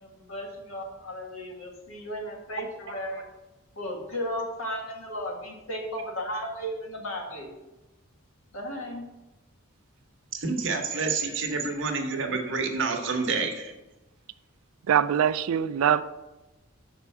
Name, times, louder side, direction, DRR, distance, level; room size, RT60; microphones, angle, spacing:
voice 1, 0.0-3.2 3.8-7.5 8.5-9.0, equal, 80° left, 1.5 m, -35 dB
voice 2, 10.3-13.7, right 4 dB, 60° right, 1.0 m, -28 dB
voice 3, 14.9-16.0, right 9 dB, 85° right, 0.3 m, -23 dB
6.1 x 4.4 x 5.8 m
head